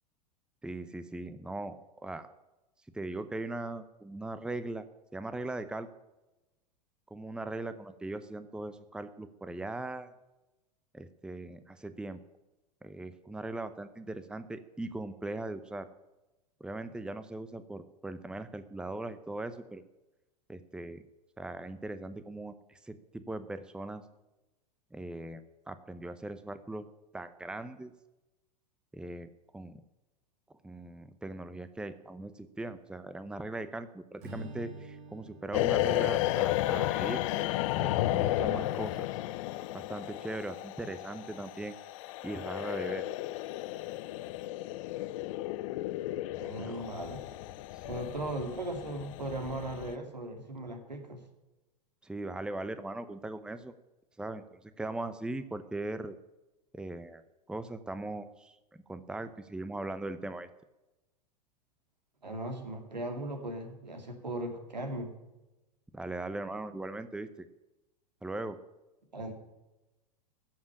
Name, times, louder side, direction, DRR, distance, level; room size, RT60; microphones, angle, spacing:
voice 1, 0.6-2.3 2.9-5.9 7.1-10.1 10.9-12.2 12.8-15.9 16.6-19.8 20.5-21.0 21.4-24.0 24.9-26.9 27.1-27.9 28.9-29.8 30.6-37.2 37.8-39.1 39.7-41.8 42.2-43.0 46.6-46.8 47.7-48.0 52.0-53.7 54.2-56.2 56.7-60.5 65.9-67.5 68.2-68.6, right 2 dB, 5° right, 12 dB, 0.8 m, -39 dB
Strum, 34.2-38.6, right 1 dB, 55° right, 4.2 m, -49 dB
sound 1, 35.5-49.9, left 16 dB, 50° left, 0.7 m, -33 dB
voice 2, 46.4-47.2 47.8-51.2 62.2-65.1 69.1-69.3, right 1 dB, 85° right, 5 dB, 2.6 m, -38 dB
14.5 x 7.4 x 10.0 m, 1.0 s
figure-of-eight pair, 90°, 21 cm